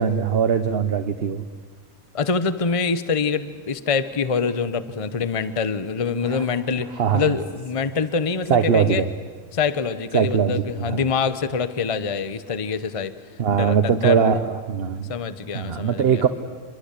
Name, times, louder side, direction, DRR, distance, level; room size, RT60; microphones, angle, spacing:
voice 1, 0.0-1.4 6.3-6.4 7.0-7.4 8.5-9.1 10.1-11.0 13.4-15.1 15.5-16.3, right 7 dB, 50° right, 9 dB, 1.1 m, -21 dB
voice 2, 2.1-9.0 9.5-13.1 13.5-14.3 15.1-16.2, left 5 dB, 25° left, 13 dB, 0.9 m, -25 dB
27.0 x 22.0 x 8.3 m, 1.5 s
omnidirectional pair, 1.5 m